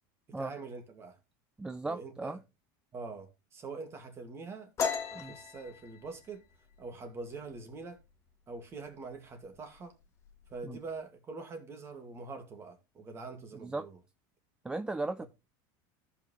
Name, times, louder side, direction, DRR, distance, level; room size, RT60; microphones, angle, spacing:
voice 1, 0.3-1.2 1.8-2.4 2.9-4.7 5.1-6.4 6.8-8.0 8.5-9.9 10.5-14.0 15.2-15.3, right 4 dB, 25° right, 2.1 m, -44 dB
voice 2, 1.6-2.4 5.1-5.3 10.6-10.8 13.5-13.9 14.6-15.2, right 2 dB, 10° right, 0.4 m, -36 dB
sound 1, 4.8-8.2 8.5-8.9 9.2-9.8 10.0-10.8, left 6 dB, 25° left, 1.5 m, -37 dB
14.0 x 5.7 x 3.1 m
supercardioid pair, 150°, 10 cm